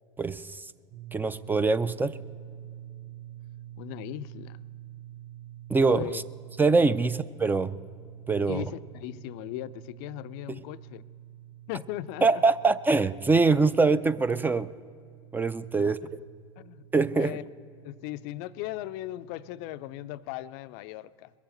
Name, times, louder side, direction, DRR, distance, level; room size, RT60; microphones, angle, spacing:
sound 1, 0.9-20.2, right 13 dB, 35° right, 1.0 m, -47 dB
voice 1, 1.1-2.1 5.7-6.2 6.6-7.7 8.3-8.6 12.2-14.7 15.3-16.0 16.9-17.4, right 4 dB, 15° right, 15 dB, 0.4 m, -23 dB
voice 2, 3.8-4.6 5.9-6.2 8.5-11.0 11.7-12.4 15.8-16.1 16.6-16.8 17.1-17.4 17.8-21.3, left 15 dB, 60° left, 14 dB, 0.4 m, -38 dB
21.5 x 7.2 x 7.8 m, 2.3 s
hypercardioid pair, 90°, 14 cm